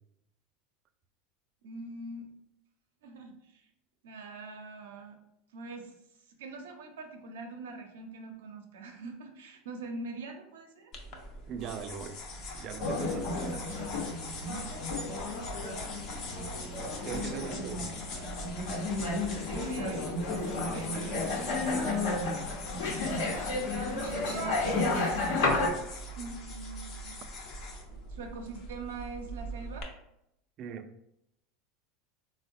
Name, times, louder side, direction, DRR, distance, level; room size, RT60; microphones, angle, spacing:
voice 1, 1.6-2.3 3.0-3.7 4.0-5.2 5.5-5.9 6.4-10.9 13.5-13.6 14.5-14.8 19.5-20.9 23.8-25.0 26.2-27.2 27.9-29.9, right 3 dB, 90° right, 0.6 m, -43 dB
sound 1, 10.9-29.8, left 1 dB, 50° left, 0.6 m, -42 dB
voice 2, 11.5-12.2 12.5-13.4 17.0-17.9 21.6-22.0 30.6-30.9, right 7 dB, 45° right, 0.3 m, -40 dB
sound 2, 12.8-25.7, left 2 dB, 80° left, 0.8 m, -32 dB
sound 3, 20.7-26.1, left 2 dB, 10° left, 0.6 m, -51 dB
3.6 x 2.1 x 2.5 m
supercardioid pair, 115°, 0 cm